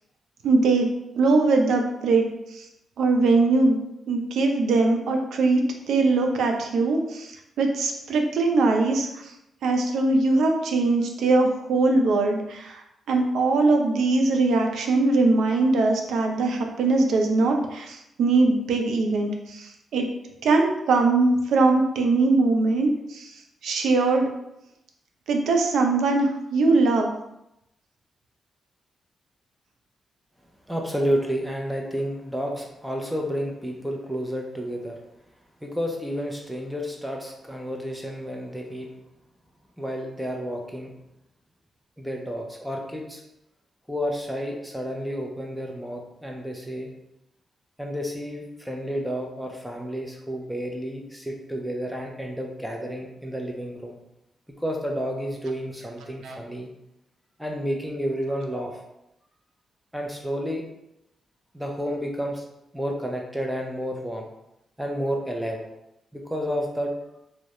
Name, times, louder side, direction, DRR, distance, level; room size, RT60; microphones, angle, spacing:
voice 1, 0.4-2.2 3.0-7.3 7.6-9.1 9.6-12.7 13.1-20.1 20.4-23.3 23.6-24.3 25.3-27.1 56.2-56.4, right 3 dB, 90° right, 3 dB, 0.4 m, -21 dB
voice 2, 30.7-35.0 35.6-38.9 39.8-40.9 42.0-43.2 43.9-46.9 47.8-54.0 54.6-56.7 57.4-58.8 59.9-60.6 61.5-62.4 62.7-64.3 64.8-65.6 66.1-66.9, equal, 5° right, 0 dB, 0.4 m, -30 dB
2.3 x 2.0 x 2.8 m, 0.84 s
wide cardioid pair, 130°, 0 cm